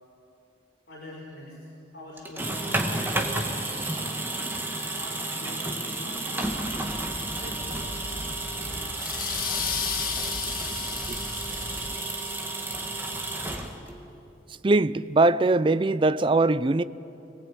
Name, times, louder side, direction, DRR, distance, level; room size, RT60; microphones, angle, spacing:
voice 1, 0.9-1.6 1.9-4.2 4.9-8.9, left 1 dB, 70° left, 5.6 m, -44 dB
sound 1, 2.2-14.1, right 2 dB, 10° right, 1.7 m, -32 dB
sound 2, 6.4-11.9, equal, 10° left, 0.7 m, -41 dB
sound 3, 9.0-12.4, left 7 dB, 50° left, 1.7 m, -33 dB
voice 2, 14.6-16.8, right 2 dB, 30° right, 0.5 m, -21 dB
25.5 x 19.0 x 9.1 m
head